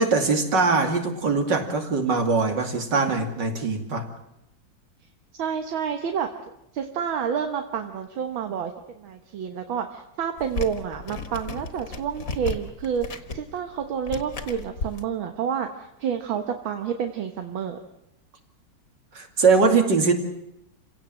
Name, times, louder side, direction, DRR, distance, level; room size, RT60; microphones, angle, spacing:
voice 1, 0.0-4.1 19.1-20.1, right 4 dB, 60° right, 4 dB, 3.2 m, -22 dB
voice 2, 5.4-6.3 6.7-17.8, right 7 dB, 75° right, 6 dB, 2.0 m, -29 dB
sound 1, 10.4-15.0, left 3 dB, 45° left, 1.9 m, -35 dB
28.5 x 17.0 x 7.7 m, 0.84 s
omnidirectional pair, 2.2 m